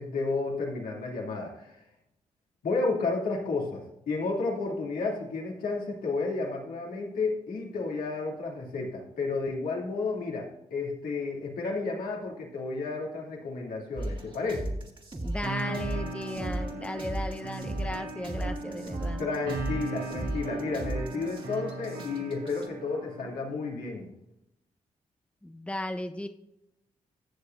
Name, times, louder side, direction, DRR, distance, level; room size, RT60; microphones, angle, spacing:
voice 1, 0.0-1.8 2.6-14.7 19.2-24.1, left 3 dB, 80° left, -2 dB, 2.8 m, -32 dB
sound 1, 14.0-22.7, right 1 dB, 35° right, 2.2 m, -36 dB
voice 2, 15.2-19.2 25.4-26.3, left 1 dB, 10° left, 6 dB, 0.9 m, -36 dB
sound 2, 15.4-23.5, right 3 dB, 85° right, 2.4 m, -38 dB
16.0 x 6.9 x 2.6 m, 0.85 s
supercardioid pair, 45°, 15 cm